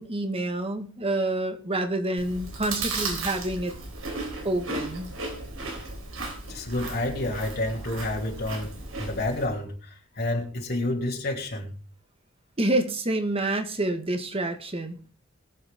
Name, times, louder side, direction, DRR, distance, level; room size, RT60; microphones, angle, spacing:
voice 1, 0.0-3.7 4.4-5.1 12.6-15.0, right 1 dB, 30° right, 1.8 m, -28 dB
Chewing mastication, 2.2-9.5, right 3 dB, 85° right, 4.1 m, -35 dB
voice 2, 6.5-8.7 9.0-11.7, left 1 dB, 50° left, 2.8 m, -29 dB
21.5 x 8.0 x 3.7 m
head